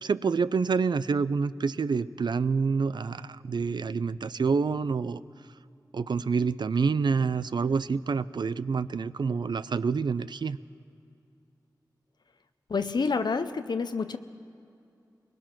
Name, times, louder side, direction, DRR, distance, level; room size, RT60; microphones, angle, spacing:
voice 1, 0.0-5.2 5.9-10.6, right 5 dB, 80° right, 16 dB, 0.5 m, -27 dB
voice 2, 12.7-14.2, left 4 dB, 75° left, 9 dB, 0.6 m, -28 dB
23.5 x 21.0 x 6.0 m, 2.6 s
wide cardioid pair, 80°, 7 cm